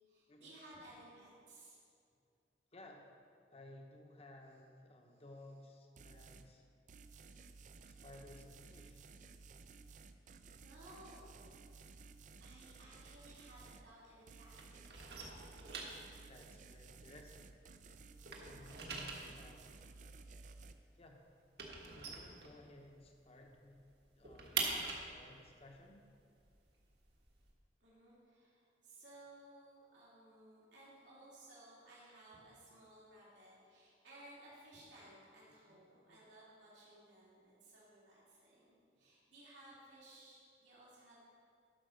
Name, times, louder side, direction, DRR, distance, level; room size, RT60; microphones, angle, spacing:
voice 1, 0.0-1.8 6.0-6.4 10.6-11.8 12.4-14.6 27.8-41.2, right 1 dB, 85° right, -8 dB, 2.9 m, -59 dB
voice 2, 2.7-3.1 3.5-6.6 7.9-9.0 16.3-17.6 18.4-19.8 21.0-21.2 21.9-24.6 25.1-26.0 35.7-35.8 36.1-36.2, left 1 dB, 35° left, 2 dB, 0.9 m, -57 dB
sound 1, 6.0-6.5 6.9-13.9 14.3-20.7, right 4 dB, 45° right, 0.4 m, -56 dB
sound 2, 12.9-14.3 14.5-17.8 18.0-23.1 23.4-23.5 23.8-27.5, right 4 dB, 65° right, 1.4 m, -44 dB
11.5 x 5.2 x 6.4 m, 2.3 s
head